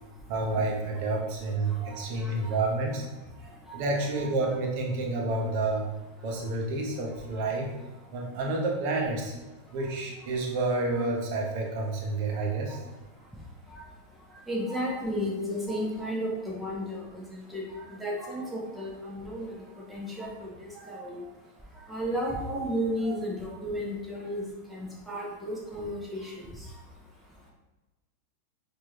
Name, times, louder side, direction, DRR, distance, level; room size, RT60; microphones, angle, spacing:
voice 1, 0.3-3.1 3.7-5.8 6.2-7.7 8.1-9.3 9.7-12.8, right 2 dB, 45° right, 0 dB, 1.0 m, -29 dB
voice 2, 1.8-2.5 3.7-3.8 4.2-4.3 13.7-13.8 14.5-17.0 17.5-17.6 18.0-19.6 19.9-21.2 21.9-24.4 24.7-26.5, equal, 5° right, -2 dB, 1.0 m, -33 dB
6.0 x 2.8 x 3.0 m, 1.1 s
figure-of-eight pair, 90°, 0 cm